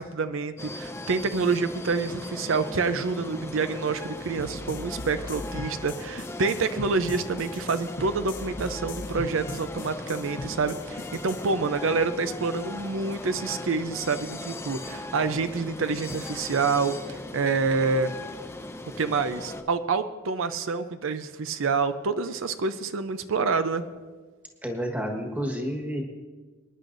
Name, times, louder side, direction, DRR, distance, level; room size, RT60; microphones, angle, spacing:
voice 1, 0.0-18.1 19.0-23.8, right 4 dB, 85° right, 10 dB, 0.6 m, -27 dB
sound 1, 0.6-19.6, left 2 dB, 15° left, 0.6 m, -38 dB
sound 2, 4.4-11.5, left 2 dB, 65° left, 1.0 m, -38 dB
voice 2, 24.6-26.0, equal, 10° right, 1 dB, 1.4 m, -30 dB
25.5 x 10.0 x 2.6 m, 1.4 s
head